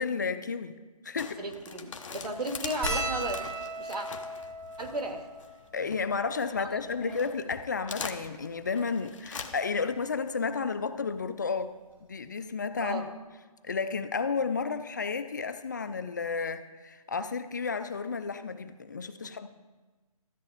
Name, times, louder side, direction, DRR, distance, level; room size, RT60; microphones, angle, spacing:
voice 1, 0.0-1.4 5.7-13.1 13.6-19.5, left 5 dB, 30° left, 11 dB, 0.4 m, -32 dB
sound 1, 1.2-6.4 6.8-9.9, left 5 dB, 55° left, 1.0 m, -42 dB
voice 2, 1.4-3.4 3.8-4.1 4.8-5.3 6.6-6.7 7.0-7.1 12.8-13.1 19.2-19.3, right 1 dB, 85° right, 4 dB, 2.1 m, -35 dB
sound 2, 2.8-7.4 8.2-8.3 8.5-8.7 9.9-10.1 11.6-11.7 11.9-12.1, right 2 dB, 10° right, 2.4 m, -38 dB
13.5 x 8.3 x 4.9 m, 1.3 s
hypercardioid pair, 160°, 20 cm